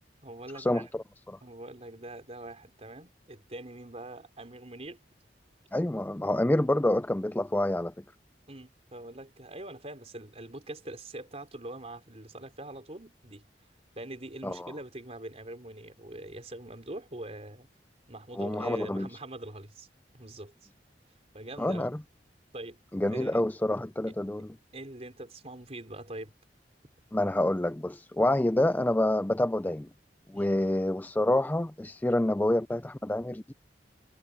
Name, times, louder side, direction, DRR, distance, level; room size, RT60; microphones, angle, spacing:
voice 1, 0.2-0.9 1.4-5.0 8.5-13.4 13.9-17.7 18.1-19.9 20.1-20.5 21.3-21.9 22.5-22.8 23.1-23.4 24.7-26.3 30.3-30.7, right 1 dB, 35° right, 4.1 m, -43 dB
voice 2, 5.7-7.9 14.4-14.7 18.4-19.1 21.6-21.9 22.9-24.5 27.1-29.9 30.3-33.5, left 1 dB, 10° left, 0.4 m, -27 dB
head